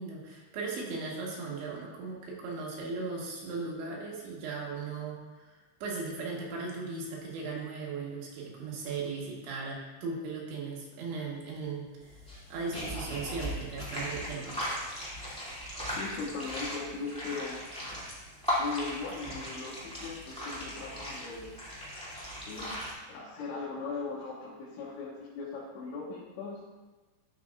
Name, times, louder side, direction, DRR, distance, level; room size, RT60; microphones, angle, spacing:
voice 1, 0.0-12.2 12.5-14.6, right 4 dB, 75° right, -3 dB, 3.6 m, -37 dB
sound 1, 12.0-22.9, equal, 10° left, 0.4 m, -38 dB
voice 2, 16.0-17.6 18.6-21.5 22.5-22.8 23.1-26.6, left 4 dB, 75° left, -7 dB, 3.6 m, -39 dB
12.5 x 7.6 x 2.4 m, 1.2 s
omnidirectional pair, 5.5 m